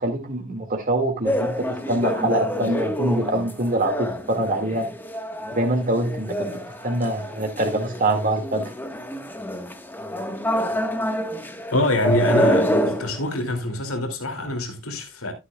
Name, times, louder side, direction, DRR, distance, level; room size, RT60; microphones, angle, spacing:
voice 1, 0.0-4.9 5.5-6.5 6.8-8.7, right 1 dB, 40° right, 2.0 m, -24 dB
sound 1, 1.2-13.2, equal, 10° left, 1.3 m, -27 dB
voice 2, 11.7-15.3, left 1 dB, 85° left, 2.5 m, -25 dB
13.0 x 9.9 x 2.3 m
head